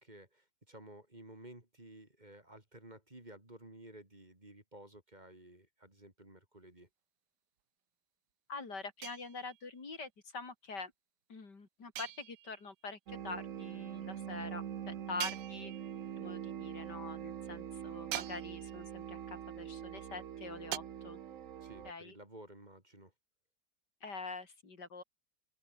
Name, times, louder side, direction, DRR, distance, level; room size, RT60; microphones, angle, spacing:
voice 1, 0.0-6.9 21.6-23.1, right 1 dB, 25° right, 3.7 m, -54 dB
voice 2, 8.5-10.9 11.3-15.7 16.2-21.2 21.8-22.2 24.0-25.0, left 4 dB, 75° left, 4.1 m, -45 dB
sound 1, 9.0-9.8 12.0-12.7 15.2-16.1 18.1-18.9 20.7-20.8, right 16 dB, 80° right, 1.2 m, -43 dB
sound 2, 13.1-21.9, right 9 dB, 55° right, 1.2 m, -44 dB
open air
omnidirectional pair, 1.8 m